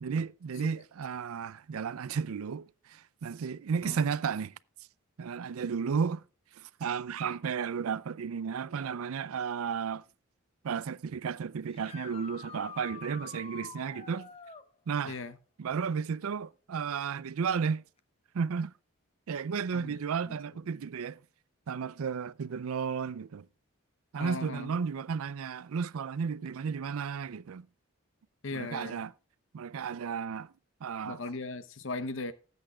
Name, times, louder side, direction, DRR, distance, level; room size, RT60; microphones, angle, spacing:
voice 1, 0.0-4.5 5.2-6.2 6.6-10.0 10.6-14.3 14.9-15.2 15.6-17.8 18.3-18.7 19.3-21.2 21.7-23.5 24.1-27.7 28.5-29.1 29.5-30.5 30.8-31.2, right 6 dB, 80° right, 0.4 m, -33 dB
sound 1, 11.7-14.7 18.0-18.1 20.1-20.2 26.4-26.5, left 6 dB, 25° left, 0.6 m, -46 dB
voice 2, 24.2-24.7 28.4-29.0 31.0-32.3, left 3 dB, 60° left, 0.8 m, -38 dB
19.0 x 8.1 x 2.3 m
head